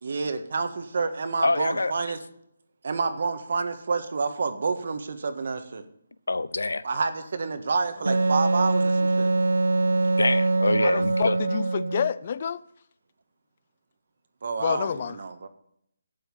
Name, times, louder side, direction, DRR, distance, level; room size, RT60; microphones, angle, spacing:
voice 1, 0.0-2.2 2.8-5.8 6.8-9.3 14.4-15.5, right 4 dB, 60° right, 1.6 m, -28 dB
voice 2, 1.4-1.9 6.3-6.8 10.2-11.4, left 2 dB, 85° left, 0.8 m, -25 dB
Wind instrument woodwind instrument, 8.1-12.1, right 3 dB, 85° right, 0.5 m, -23 dB
voice 3, 10.8-12.6 14.6-15.2, left 7 dB, 40° left, 0.6 m, -28 dB
12.0 x 8.9 x 5.7 m
hypercardioid pair, 160°, 0 cm